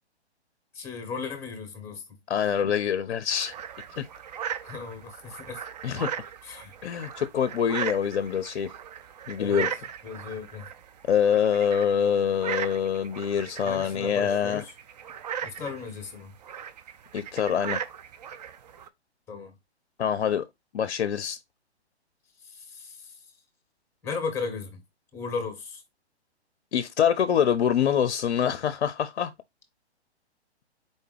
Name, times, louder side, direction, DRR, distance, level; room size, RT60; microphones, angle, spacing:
voice 1, 0.7-2.1 4.6-5.6 6.4-6.7 9.4-9.7 10.0-10.7 13.6-14.7 15.4-16.3 19.3-19.5 22.4-23.2 24.0-24.8 25.1-25.8, left 5 dB, 10° left, 1.2 m, -36 dB
voice 2, 2.3-3.5 4.0-4.1 5.8-6.1 6.8-8.7 9.3-9.7 11.1-14.6 17.1-17.8 20.0-20.4 20.7-21.4 26.7-29.3, left 8 dB, 65° left, 0.5 m, -25 dB
sound 1, 3.3-18.9, right 8 dB, 40° right, 0.4 m, -38 dB
4.2 x 3.4 x 3.2 m
figure-of-eight pair, 130°, 33 cm